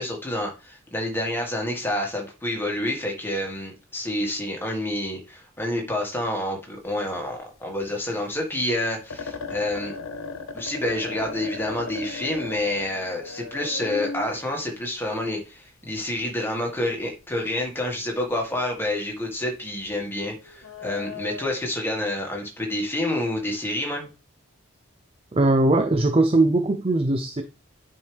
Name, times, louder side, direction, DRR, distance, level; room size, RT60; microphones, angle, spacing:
voice 1, 0.0-9.9 10.5-24.1, left 1 dB, 10° left, 1.8 m, -28 dB
sound 1, 6.7-7.6 7.8-7.9 8.3-8.5 8.8-8.9 9.1-15.4 16.6-16.7 17.0-17.2 17.6-17.9 18.3-18.4 18.8-19.1 19.7-21.5, left 4 dB, 85° left, 0.9 m, -37 dB
voice 2, 25.3-27.4, right 2 dB, 25° right, 0.5 m, -20 dB
10.0 x 4.6 x 3.5 m
head